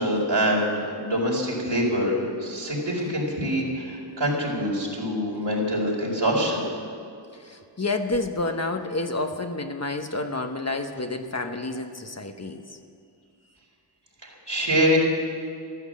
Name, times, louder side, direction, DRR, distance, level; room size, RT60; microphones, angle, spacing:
voice 1, 0.0-6.6 14.2-15.0, equal, 65° right, -2 dB, 4.7 m, -25 dB
voice 2, 7.3-12.8, left 2 dB, 35° left, 5 dB, 1.1 m, -29 dB
14.0 x 13.0 x 7.5 m, 2.5 s
wide cardioid pair, 60°, 46 cm